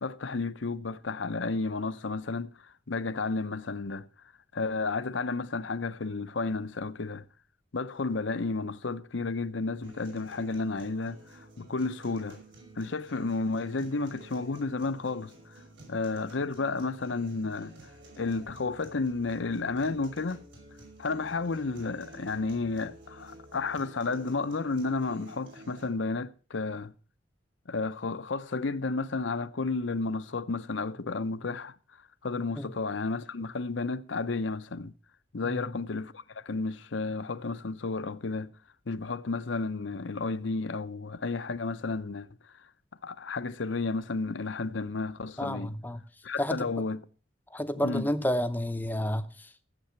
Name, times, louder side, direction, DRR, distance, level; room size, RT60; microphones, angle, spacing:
voice 1, 0.0-2.5 2.9-4.1 4.5-7.2 7.7-12.4 12.8-15.3 15.9-17.8 18.2-20.4 21.0-26.9 27.7-31.7 32.2-34.9 35.3-38.5 38.9-42.3 43.0-45.7 46.2-47.0 47.8-48.1, left 3 dB, 75° left, 0.7 m, -32 dB
sound 1, 9.8-25.8, right 2 dB, 70° right, 6.0 m, -51 dB
voice 2, 35.4-35.8 45.4-46.0 46.4-46.7 47.5-49.7, equal, 10° left, 0.7 m, -31 dB
15.0 x 7.7 x 5.8 m
head